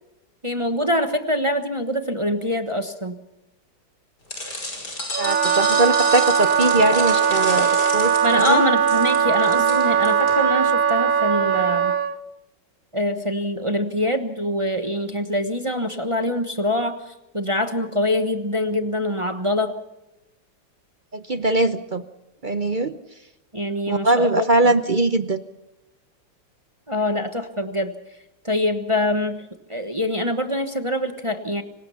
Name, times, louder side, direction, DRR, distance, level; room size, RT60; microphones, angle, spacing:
voice 1, 0.4-3.2 8.2-11.9 12.9-17.0 17.3-19.7 23.5-24.7 26.9-28.0 28.4-31.6, left 1 dB, 20° right, 7 dB, 1.0 m, -24 dB
sound 1, 4.3-10.3, left 1 dB, 55° left, 6.4 m, -31 dB
Wind instrument woodwind instrument, 5.1-12.2, right 8 dB, 85° right, 1.6 m, -20 dB
voice 2, 5.2-8.6 21.1-22.0 22.4-22.9 23.9-25.4, right 2 dB, 45° right, 10 dB, 0.6 m, -21 dB
26.0 x 19.0 x 5.7 m, 0.92 s
omnidirectional pair, 2.0 m